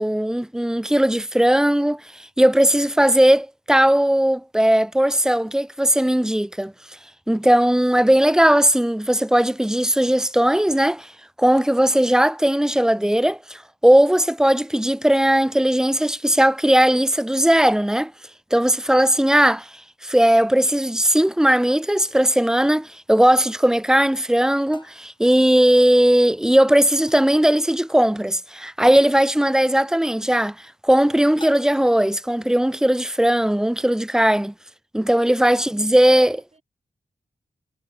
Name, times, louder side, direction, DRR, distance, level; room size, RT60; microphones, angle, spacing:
voice 1, 0.0-2.0 2.4-6.7 7.3-11.1 11.4-18.1 18.5-19.7 20.0-30.6 30.8-34.5 34.9-36.4, right 1 dB, 5° right, 0.4 m, -18 dB
sound 1, 22.6-22.8 24.7-25.2 27.1-27.4 29.0-29.3 31.4-32.0, left 2 dB, 30° left, 1.7 m, -46 dB
voice 2, 35.3-36.6, right 3 dB, 40° right, 7.3 m, -53 dB
cardioid pair, 65°, 17 cm